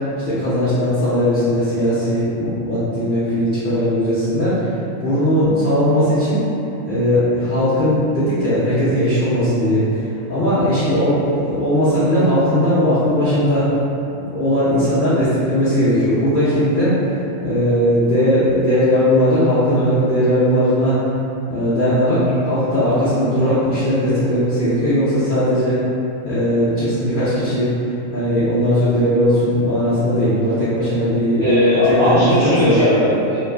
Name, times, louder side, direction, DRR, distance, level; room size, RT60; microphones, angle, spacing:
voice 1, 0.2-6.4 6.8-10.0 10.3-13.7 14.1-17.0 17.4-21.0 21.5-25.8 26.2-27.7 28.1-31.5 31.9-32.8, equal, 60° left, -13 dB, 0.5 m, -18 dB
voice 2, 31.4-33.4, equal, 55° right, -13 dB, 0.5 m, -17 dB
2.4 x 2.3 x 2.3 m, 2.8 s
omnidirectional pair, 1.4 m